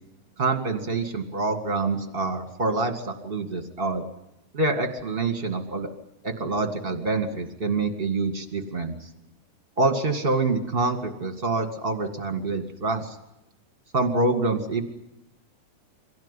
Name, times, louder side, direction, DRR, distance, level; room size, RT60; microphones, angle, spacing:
voice 1, 0.4-4.0 4.5-5.9 6.2-9.1 9.8-13.2 13.9-14.8, right 3 dB, 20° right, 6 dB, 1.7 m, -26 dB
24.5 x 17.0 x 10.0 m, 0.89 s
omnidirectional pair, 3.7 m